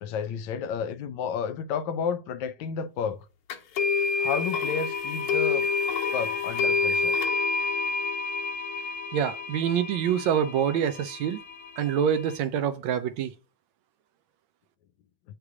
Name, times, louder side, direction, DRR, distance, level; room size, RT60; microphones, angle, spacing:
voice 1, 0.0-3.2 4.2-5.7 6.1-7.2, left 7 dB, 35° left, 0.5 m, -31 dB
sound 1, 3.5-12.4, left 4 dB, 50° left, 1.4 m, -29 dB
voice 2, 9.1-11.4 11.8-13.3, right 8 dB, 35° right, 0.5 m, -26 dB
8.4 x 3.4 x 4.8 m
supercardioid pair, 165°, 29 cm